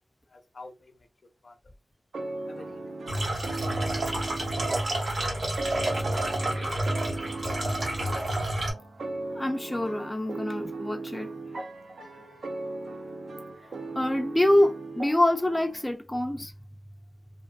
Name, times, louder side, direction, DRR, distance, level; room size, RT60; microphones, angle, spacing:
voice 1, 0.3-0.9 1.4-1.5 2.5-3.7 6.0-6.2 6.6-7.0 7.4-7.5, left 3 dB, 60° left, 0.6 m, -49 dB
sound 1, 2.1-15.9, right 2 dB, 80° right, 0.6 m, -38 dB
sound 2, 3.1-8.7, right 1 dB, 60° right, 1.0 m, -29 dB
voice 2, 9.4-11.3 13.9-16.5, left 1 dB, 15° left, 0.4 m, -25 dB
2.5 x 2.5 x 2.3 m
wide cardioid pair, 80°, 0 cm